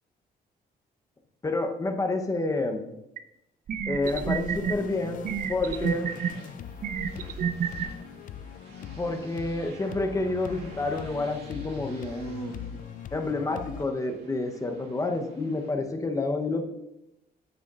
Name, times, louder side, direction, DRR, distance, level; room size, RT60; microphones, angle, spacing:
voice 1, 1.4-2.8 3.9-6.1 9.0-12.6 13.1-16.6, left 2 dB, 20° left, 5 dB, 0.8 m, -29 dB
sound 1, 3.2-3.3 3.7-4.7 5.2-6.3 6.8-7.9, right 7 dB, 55° right, 0.5 m, -29 dB
sound 2, 4.0-13.9, left 8 dB, 50° left, 0.4 m, -42 dB
sound 3, 5.6-15.7, right 3 dB, 90° right, 1.8 m, -52 dB
9.3 x 9.3 x 2.5 m, 0.88 s
wide cardioid pair, 160°, 17 cm